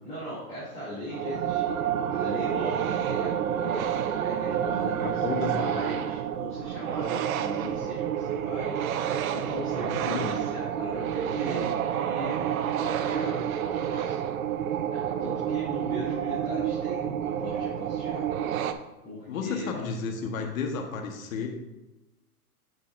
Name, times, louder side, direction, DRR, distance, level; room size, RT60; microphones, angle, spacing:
voice 1, 0.0-3.9 4.2-5.2 5.5-14.2 14.9-18.4 19.0-19.8, left 1 dB, 15° left, -10 dB, 2.4 m, -38 dB
sound 1, 1.1-18.7, right 9 dB, 60° right, 0.7 m, -29 dB
voice 2, 4.7-5.6 9.8-10.4 19.3-21.5, left 5 dB, 60° left, 3 dB, 1.3 m, -33 dB
8.9 x 7.5 x 2.5 m, 1.0 s
hypercardioid pair, 150°, 46 cm